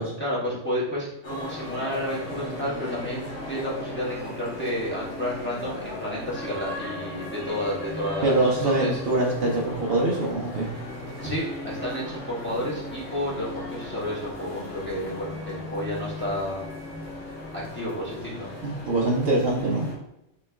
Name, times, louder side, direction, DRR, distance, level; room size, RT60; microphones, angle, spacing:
voice 1, 0.2-3.2 3.5-9.0 11.2-16.6 17.5-18.5, equal, 10° left, -7 dB, 1.2 m, -31 dB
sound 1, 1.2-19.9, left 1 dB, 80° left, 1.5 m, -37 dB
voice 2, 8.2-10.7 18.6-19.9, right 2 dB, 60° right, -2 dB, 0.9 m, -24 dB
3.9 x 3.1 x 3.4 m, 0.83 s
omnidirectional pair, 1.2 m